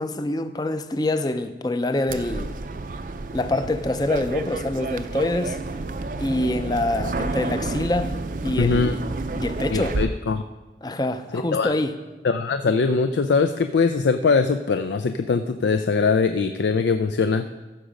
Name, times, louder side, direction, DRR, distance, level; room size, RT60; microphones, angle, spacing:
voice 1, 0.0-2.6 3.3-5.6 6.2-8.2 8.4-9.0 9.4-10.0 10.8-12.0, left 2 dB, 20° left, 10 dB, 0.5 m, -25 dB
sound 1, 2.1-10.1, right 3 dB, 50° right, 0.5 m, -30 dB
voice 2, 8.6-9.0 9.7-10.4 11.3-11.7 12.2-17.5, left 4 dB, 85° left, 9 dB, 0.4 m, -21 dB
14.5 x 6.4 x 5.1 m, 1.2 s
head